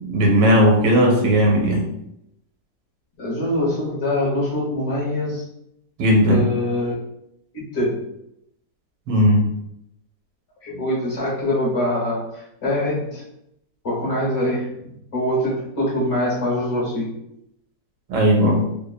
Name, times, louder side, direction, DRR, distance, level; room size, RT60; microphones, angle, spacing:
voice 1, 0.0-1.9 6.0-6.4 9.1-9.5 18.1-18.6, equal, 85° right, 0 dB, 1.2 m, -16 dB
voice 2, 3.2-5.4 6.2-6.9 7.5-8.0 10.6-13.2 13.8-17.2, left 1 dB, 45° left, -7 dB, 1.2 m, -24 dB
3.1 x 2.1 x 2.2 m, 0.78 s
omnidirectional pair, 1.9 m